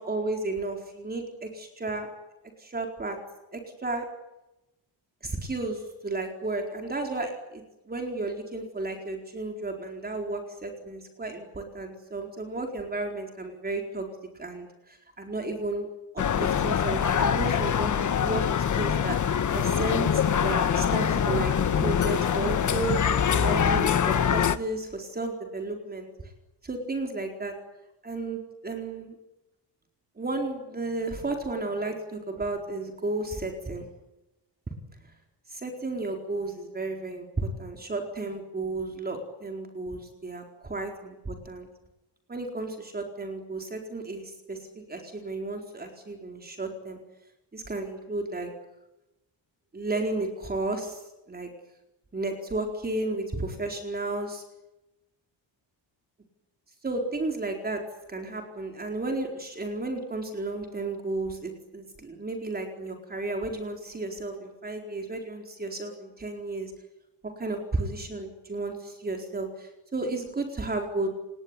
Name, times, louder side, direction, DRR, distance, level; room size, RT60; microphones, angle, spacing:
voice 1, 0.0-2.1 2.6-3.2 3.5-4.1 5.2-14.1 14.3-15.9 16.1-17.9 18.2-19.2 19.5-23.0 23.3-26.1 26.6-27.5 28.0-29.1 30.2-33.9 35.5-41.7 42.3-47.0 47.5-48.5 49.7-51.5 52.1-54.4 56.8-57.8 58.1-66.7 67.2-71.1, right 2 dB, 20° right, 3 dB, 4.3 m, -33 dB
sound 1, 16.2-24.6, left 8 dB, 40° left, 1.3 m, -24 dB
28.5 x 20.5 x 9.8 m, 0.95 s
wide cardioid pair, 180°, 45 cm